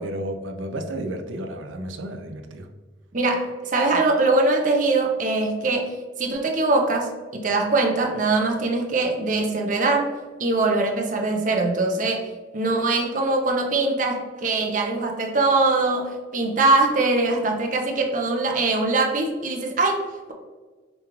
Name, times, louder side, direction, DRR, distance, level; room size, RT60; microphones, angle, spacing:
voice 1, 0.0-2.7, right 1 dB, 90° right, 6 dB, 0.5 m, -32 dB
voice 2, 3.1-10.1 10.4-12.3 12.5-20.3, right 3 dB, 45° right, 2 dB, 0.6 m, -22 dB
5.1 x 2.3 x 3.0 m, 1.4 s
head